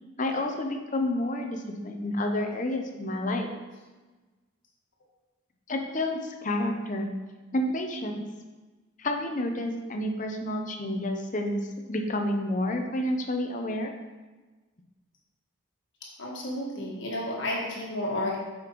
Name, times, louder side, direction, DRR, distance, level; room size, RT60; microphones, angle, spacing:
voice 1, 0.2-3.5 5.7-7.1 7.5-8.3 9.0-13.9, left 1 dB, 35° left, 3 dB, 0.7 m, -29 dB
voice 2, 16.2-18.4, left 1 dB, 60° left, -3 dB, 1.5 m, -31 dB
7.8 x 5.1 x 3.0 m, 1.2 s
head